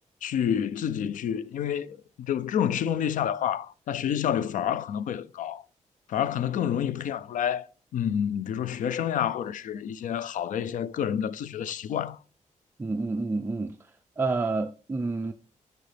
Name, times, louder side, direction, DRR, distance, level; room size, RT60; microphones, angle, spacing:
voice 1, 0.2-5.6 6.1-7.7 7.9-12.2, left 9 dB, 85° left, 0.4 m, -28 dB
voice 2, 12.8-13.7 14.2-15.3, right 3 dB, 15° right, 0.4 m, -28 dB
6.5 x 5.0 x 3.3 m
wide cardioid pair, 150°, 13 cm